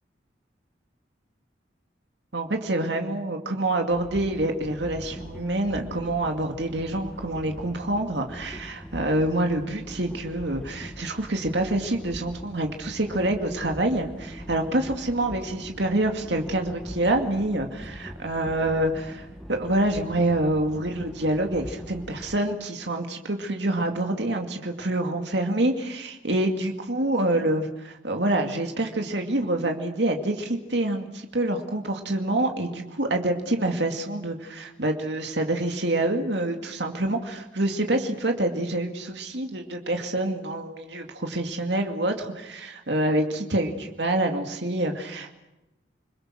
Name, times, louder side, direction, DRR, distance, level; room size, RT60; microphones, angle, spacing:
voice 1, 2.3-45.3, right 1 dB, 70° right, 4 dB, 2.3 m, -26 dB
sound 1, 3.9-22.4, equal, 5° left, 2.0 m, -41 dB
29.5 x 21.5 x 6.4 m, 0.97 s
head